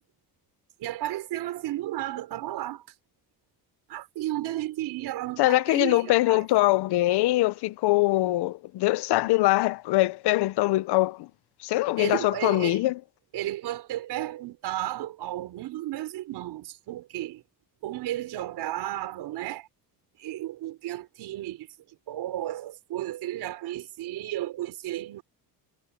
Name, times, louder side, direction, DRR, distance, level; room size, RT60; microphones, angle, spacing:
voice 1, 0.8-2.9 3.9-6.5 12.0-12.8 13.3-17.4 17.8-19.7 20.2-25.2, right 14 dB, 80° right, 4.6 m, -33 dB
voice 2, 5.4-11.3 11.6-12.9, left 18 dB, 90° left, 0.8 m, -23 dB
cardioid pair, 135°, 38 cm